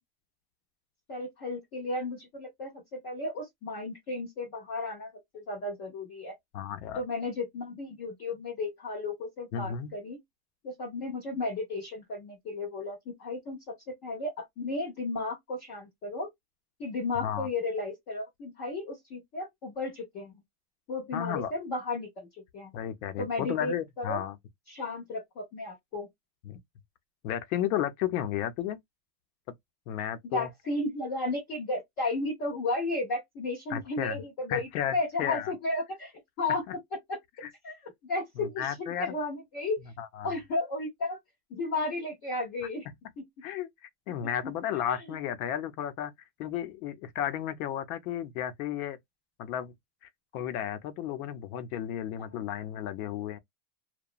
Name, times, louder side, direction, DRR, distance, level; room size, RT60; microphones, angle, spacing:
voice 1, 1.1-6.3 6.9-10.2 10.6-16.3 16.8-20.4 20.9-22.3 22.5-22.7 23.2-24.2 24.7-26.1 30.2-36.6 37.1-37.2 37.6-39.8 40.2-41.2 41.5-42.9 43.2-43.3 44.2-44.5 44.9-45.1 52.2-52.4, left 2 dB, 20° left, 0.3 m, -34 dB
voice 2, 6.5-7.0 9.5-9.9 17.2-17.5 21.1-21.5 22.7-24.3 26.5-26.6 27.2-28.8 29.9-30.5 33.7-34.2 34.5-35.5 37.4-37.5 38.4-39.1 40.0-40.3 43.4-43.7 44.1-46.1 46.4-49.0 49.4-49.7 50.3-53.4, left 10 dB, 60° left, 0.6 m, -33 dB
2.8 x 2.2 x 2.3 m
supercardioid pair, 170°, 48 cm